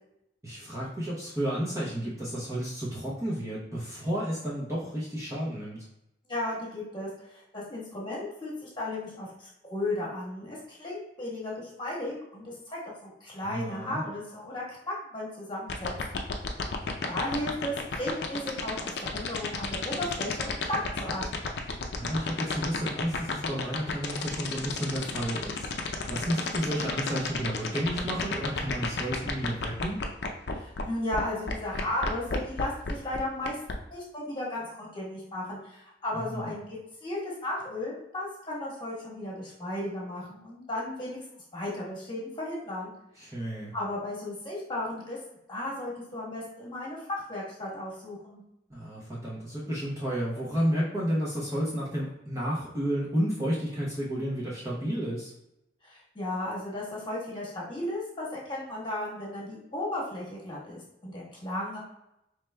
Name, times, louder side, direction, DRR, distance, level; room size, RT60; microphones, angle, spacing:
voice 1, 0.4-5.8 13.4-14.0 21.9-30.0 36.1-36.5 43.2-43.7 48.7-55.3, equal, 15° right, -7 dB, 0.7 m, -32 dB
voice 2, 6.3-16.2 17.1-21.2 30.5-33.6 33.9-42.9 43.7-45.2 45.5-48.4 55.8-61.8, left 1 dB, 25° left, -5 dB, 1.3 m, -35 dB
sound 1, 15.7-30.8 31.1-31.2 31.5-33.7, left 5 dB, 60° left, 0.5 m, -31 dB
4.7 x 3.2 x 2.2 m, 0.85 s
head